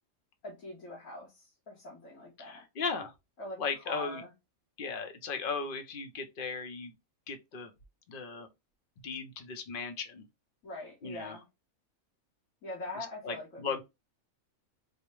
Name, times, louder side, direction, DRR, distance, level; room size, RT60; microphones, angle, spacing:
voice 1, 0.4-2.6 3.4-4.3 10.6-11.5 12.6-13.8, left 1 dB, 85° left, 1.7 m, -43 dB
voice 2, 2.4-3.1 3.6-4.2 4.8-6.9 7.3-7.7 8.1-8.5 9.0-10.3 11.0-11.4 13.2-13.8, left 5 dB, 50° left, 0.8 m, -37 dB
4.8 x 2.1 x 3.1 m
omnidirectional pair, 1.4 m